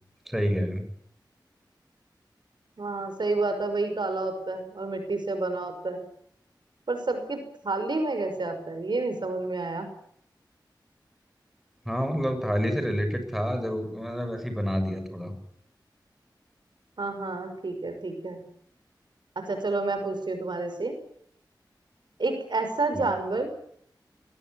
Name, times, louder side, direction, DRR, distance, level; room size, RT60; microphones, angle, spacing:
voice 1, 0.3-0.8 11.9-15.3 22.9-23.0, equal, 5° right, 7 dB, 7.2 m, -28 dB
voice 2, 2.8-6.0 6.9-9.9 17.0-18.4 19.4-20.9 22.2-23.5, right 3 dB, 70° right, 7 dB, 5.8 m, -29 dB
21.5 x 19.5 x 9.8 m, 0.68 s
wide cardioid pair, 60°, 8 cm